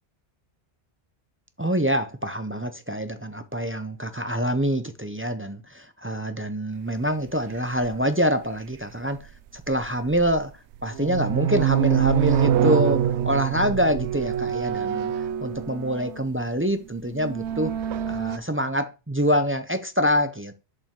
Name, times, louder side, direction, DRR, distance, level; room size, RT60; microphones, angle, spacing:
voice 1, 1.6-9.2 9.5-10.5 10.8-15.1 15.4-17.7 18.1-20.6, equal, 15° right, 0.4 m, -25 dB
sound 1, 7.8-7.9 9.7-10.4 10.8-16.2 17.0-18.4, right 9 dB, 85° right, 0.9 m, -25 dB
7.2 x 5.3 x 3.7 m
omnidirectional pair, 1.1 m